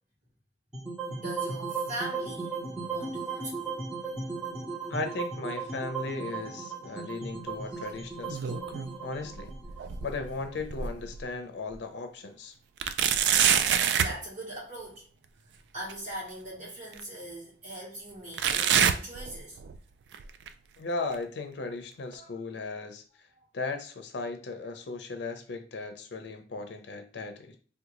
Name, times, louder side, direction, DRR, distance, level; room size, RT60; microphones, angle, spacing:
sound 1, 0.7-10.9, right 4 dB, 5° right, 0.7 m, -36 dB
voice 1, 1.2-3.8 13.8-15.1 15.7-19.6 22.1-22.3, right 1 dB, 45° right, 1.0 m, -41 dB
voice 2, 4.9-8.7 9.0-9.5 10.0-12.5 20.8-23.0 23.5-27.6, left 3 dB, 85° left, 0.5 m, -36 dB
sound 2, 8.0-8.9 9.3-11.2 11.7-11.8 12.8-14.2 15.9-16.0 16.9-17.0 18.4-19.8 20.1-20.5 21.1-21.2 22.1-22.2, right 8 dB, 80° right, 0.3 m, -27 dB
3.6 x 2.3 x 2.9 m
head